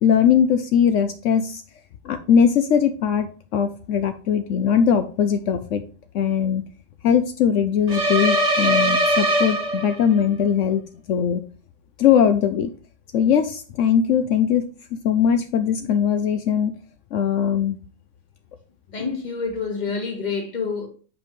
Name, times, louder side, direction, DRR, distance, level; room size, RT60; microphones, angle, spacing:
voice 1, 0.0-1.6 2.0-5.8 6.1-6.6 7.0-10.8 11.1-11.4 12.0-12.7 13.1-14.7 14.9-16.7 17.1-17.8, left 8 dB, 70° left, 0.9 m, -20 dB
sound 1, 7.9-10.2, right 1 dB, 35° right, 1.1 m, -21 dB
voice 2, 18.9-20.9, left 5 dB, 35° left, 1.5 m, -27 dB
8.4 x 5.1 x 3.1 m
omnidirectional pair, 1.4 m